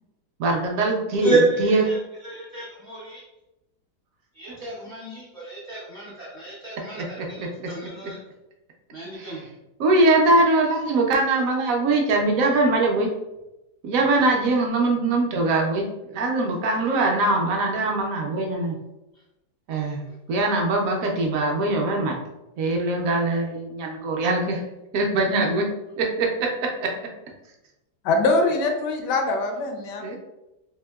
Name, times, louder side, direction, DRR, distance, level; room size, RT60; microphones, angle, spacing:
voice 1, 0.4-1.8 4.5-4.7 6.9-7.9 9.2-9.4 9.8-13.1 13.8-18.8 19.7-20.0 20.3-22.2 22.6-24.6 24.9-25.7 26.0-26.9 30.0-30.2, right 2 dB, 70° right, 1 dB, 0.9 m, -22 dB
voice 2, 1.2-2.0 2.2-3.2 4.4-7.0 7.4-8.2 8.9-9.4, right 3 dB, 50° right, -7 dB, 0.5 m, -28 dB
voice 3, 28.0-30.2, left 2 dB, 85° left, 3 dB, 1.2 m, -23 dB
3.5 x 2.7 x 2.2 m, 0.95 s
omnidirectional pair, 1.8 m